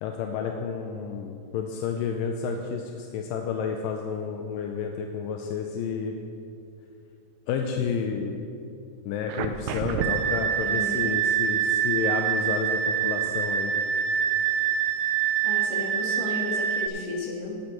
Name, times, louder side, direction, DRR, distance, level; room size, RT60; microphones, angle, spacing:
voice 1, 0.0-6.2 7.5-8.4 9.1-13.7, left 6 dB, 85° left, 3 dB, 2.3 m, -30 dB
sound 1, 9.3-16.9, right 9 dB, 80° right, 1.9 m, -25 dB
voice 2, 10.6-11.1 15.4-17.6, left 3 dB, 70° left, -2 dB, 3.1 m, -33 dB
17.5 x 8.7 x 3.0 m, 2.5 s
omnidirectional pair, 3.9 m